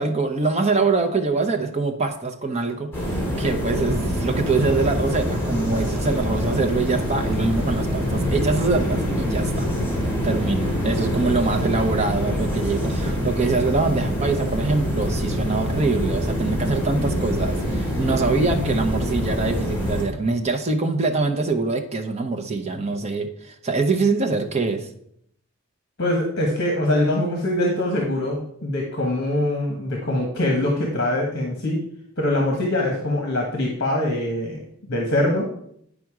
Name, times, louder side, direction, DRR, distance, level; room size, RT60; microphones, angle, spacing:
voice 1, 0.0-9.7 10.2-24.9, right 3 dB, 30° right, 5 dB, 0.8 m, -24 dB
sound 1, 2.9-20.0, equal, 10° left, 3.0 m, -25 dB
voice 2, 26.0-31.8 32.2-34.6 34.9-35.5, left 1 dB, 50° left, 1 dB, 1.3 m, -23 dB
9.4 x 5.1 x 4.8 m, 0.69 s
head